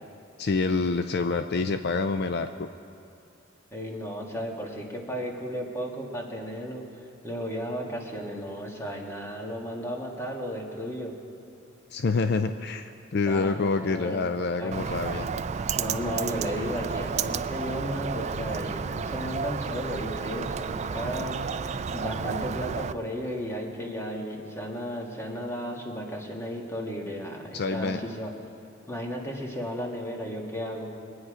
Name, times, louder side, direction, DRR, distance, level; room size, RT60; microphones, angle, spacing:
voice 1, 0.4-2.7 11.9-15.4 27.5-28.0, left 4 dB, 55° left, 9 dB, 0.4 m, -27 dB
voice 2, 3.7-6.8 7.2-11.1 13.3-14.2 14.6-14.8 15.7-21.6 21.9-28.3 28.9-30.9, equal, 15° left, 0 dB, 1.7 m, -34 dB
Bird, 14.7-22.9, right 5 dB, 35° right, 0.3 m, -31 dB
23.0 x 9.6 x 5.0 m, 2.6 s
head